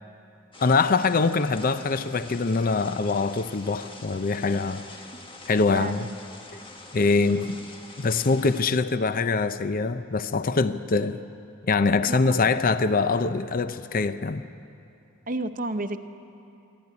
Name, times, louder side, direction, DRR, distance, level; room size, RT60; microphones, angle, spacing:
sound 1, 0.5-8.6, left 2 dB, 25° left, 1.5 m, -45 dB
voice 1, 0.6-4.8 5.5-6.1 6.9-7.6 8.0-11.2 11.7-14.4, left 4 dB, 45° left, 0.6 m, -23 dB
voice 2, 5.7-6.2 7.2-7.6 12.1-12.7 15.3-16.0, right 2 dB, 40° right, 0.9 m, -32 dB
25.5 x 12.0 x 9.6 m
head